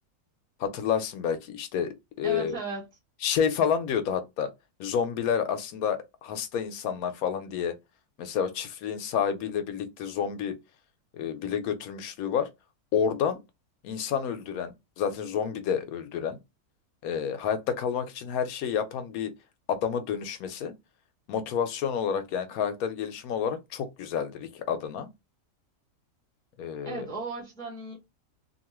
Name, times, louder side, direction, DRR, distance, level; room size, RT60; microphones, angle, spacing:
voice 1, 0.6-2.6 3.2-4.5 4.8-7.7 8.2-10.6 11.1-12.5 12.9-13.4 13.8-16.4 17.0-19.3 19.7-20.7 21.3-25.1 26.6-27.1, left 7 dB, 75° left, 1.0 m, -29 dB
voice 2, 2.2-2.9 26.8-28.0, right 3 dB, 5° left, 0.8 m, -36 dB
2.8 x 2.2 x 3.0 m
omnidirectional pair, 1.6 m